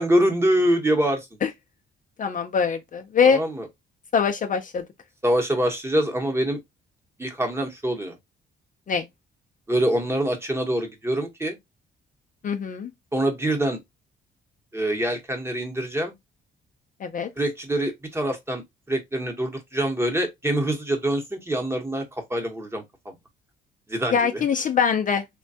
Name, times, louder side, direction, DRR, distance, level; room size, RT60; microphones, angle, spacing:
voice 1, 0.0-1.3 3.2-3.7 5.2-6.6 7.2-8.2 9.7-11.6 13.1-13.8 14.7-16.1 17.4-18.6 18.9-23.1 23.9-24.4, right 1 dB, 10° right, 1.0 m, -25 dB
voice 2, 2.2-3.4 4.1-4.8 8.9-9.1 12.4-12.9 17.0-17.3 24.1-25.3, left 6 dB, 40° left, 0.5 m, -23 dB
3.1 x 2.2 x 2.6 m
cardioid pair, 90°, 20 cm